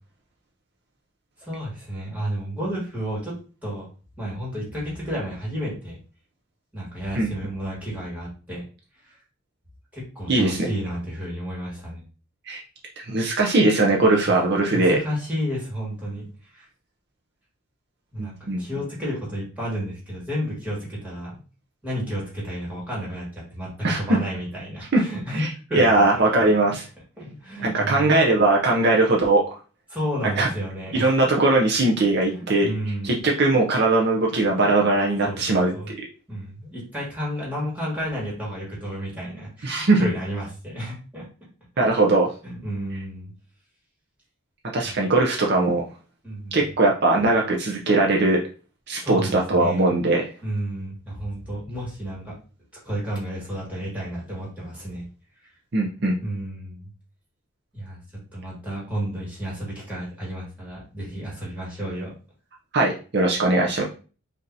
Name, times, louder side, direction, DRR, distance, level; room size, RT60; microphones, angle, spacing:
voice 1, 1.4-3.3 3.6-3.9 4.2-6.0 6.7-8.7 9.0-9.2 9.9-12.0 14.2-14.4 14.7-16.7 18.1-21.4 21.8-23.7 24.0-26.5 27.2-28.1 29.9-31.2 32.3-33.3 35.2-35.9 36.3-41.3 42.4-43.3 44.8-45.1 46.2-46.7 49.0-49.9 50.4-52.4 52.8-55.0 55.4-55.5 56.2-56.9 57.7-58.0 58.3-62.1, equal, 5° right, -5 dB, 1.9 m, -32 dB
voice 2, 10.3-10.7 12.5-12.6 13.0-15.0 18.2-18.6 23.8-24.0 24.9-25.0 25.3-26.8 27.6-29.4 30.4-30.5 30.9-32.7 33.0-35.7 39.6-40.0 41.8-42.3 44.7-45.8 46.5-48.4 48.9-50.2 55.7-56.2 62.7-63.8, right 2 dB, 50° right, -1 dB, 0.6 m, -20 dB
5.3 x 2.7 x 2.7 m, 0.37 s
head